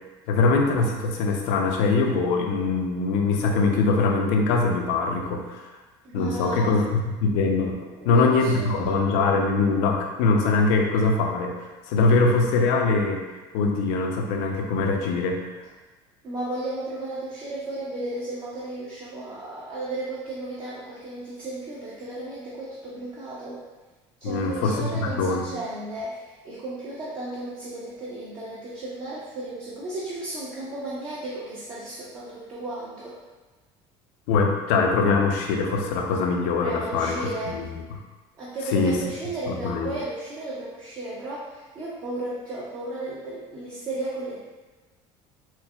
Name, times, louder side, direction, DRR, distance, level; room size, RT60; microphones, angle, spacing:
voice 1, 0.3-5.7 6.1-13.2 13.5-15.4 24.2-25.5 34.3-37.3 37.5-37.7 38.7-39.0 39.5-39.9, left 3 dB, 80° left, 1 dB, 0.6 m, -22 dB
voice 2, 6.0-6.8 7.8-9.0 16.2-23.6 24.2-33.2 36.6-37.6 38.4-44.4, right 2 dB, 40° right, -8 dB, 0.8 m, -34 dB
5.8 x 2.1 x 2.3 m, 1.2 s
cardioid pair, 135°, 13 cm